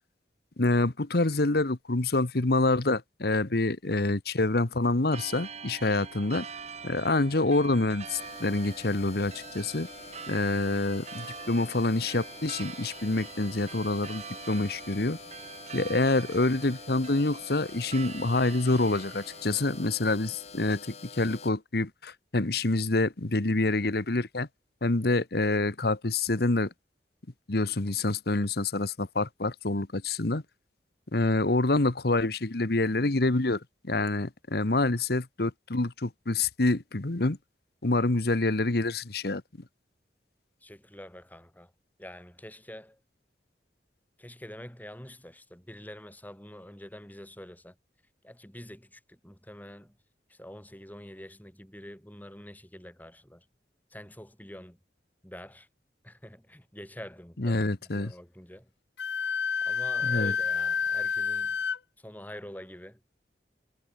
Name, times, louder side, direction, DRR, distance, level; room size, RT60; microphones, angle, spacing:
voice 1, 0.6-6.5 6.8-9.9 10.3-15.2 15.7-20.8 21.2-24.5 24.8-26.7 27.5-30.4 31.1-37.4 37.8-39.4 57.4-58.1 60.0-60.3, left 2 dB, 60° left, 1.3 m, -27 dB
sound 1, 5.1-19.9, right 5 dB, 40° right, 1.6 m, -44 dB
sound 2, 8.2-21.5, left 5 dB, 35° left, 1.9 m, -47 dB
voice 2, 40.6-41.7 42.0-43.0 44.2-47.8 48.2-50.0 50.3-53.5 53.9-54.8 55.2-55.7 56.0-58.7 59.7-61.6 62.0-63.0, equal, 10° left, 6.5 m, -46 dB
Wind instrument woodwind instrument, 59.0-61.8, left 6 dB, 80° left, 1.4 m, -29 dB
head